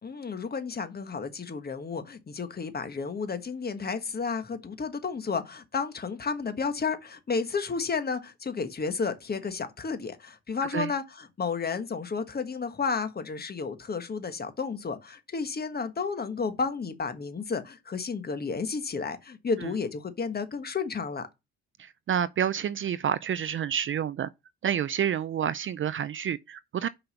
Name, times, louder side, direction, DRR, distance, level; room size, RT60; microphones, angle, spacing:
voice 1, 0.0-21.3, left 5 dB, 30° left, 1.4 m, -32 dB
voice 2, 21.8-24.3 24.6-26.9, right 9 dB, 45° right, 0.4 m, -29 dB
5.8 x 5.3 x 6.8 m
cardioid pair, 90°, 30 cm